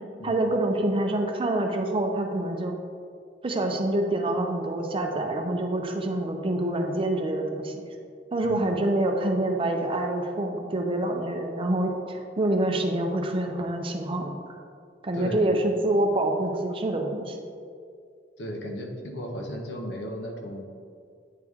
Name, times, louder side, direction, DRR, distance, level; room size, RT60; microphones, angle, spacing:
voice 1, 0.2-2.7 3.4-7.8 8.3-14.4 15.0-17.4, right 1 dB, 30° right, 3 dB, 0.5 m, -26 dB
voice 2, 8.4-8.7 15.1-15.6 18.4-20.7, equal, 70° left, 2 dB, 0.8 m, -35 dB
9.1 x 3.2 x 3.5 m, 2.2 s
head